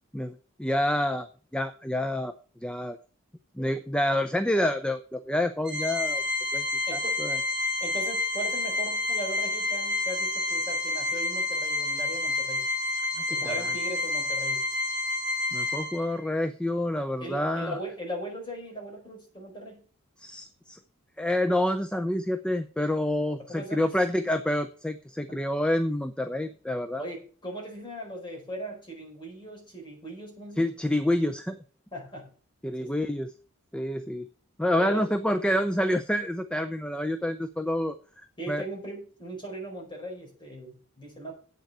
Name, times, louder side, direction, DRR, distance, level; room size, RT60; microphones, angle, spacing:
voice 1, 0.1-1.3 1.5-2.3 2.6-3.0 3.6-6.2 6.5-6.7 6.9-7.4 13.3-13.5 15.5-17.8 20.2-20.8 21.2-27.0 30.6-31.6 32.6-33.3 33.7-34.3 34.6-38.0 38.5-38.7, left 1 dB, 5° left, 9 dB, 0.5 m, -28 dB
Organ, 5.7-16.3, left 2 dB, 55° right, 2.1 m, -29 dB
voice 2, 6.9-7.4 7.8-12.7 13.3-14.6 17.2-19.8 23.5-23.9 25.3-25.4 27.0-30.7 31.9-32.3 32.8-32.9 34.8-35.0 38.4-41.3, right 1 dB, 20° left, -1 dB, 4.7 m, -39 dB
8.4 x 6.5 x 7.9 m, 0.41 s
head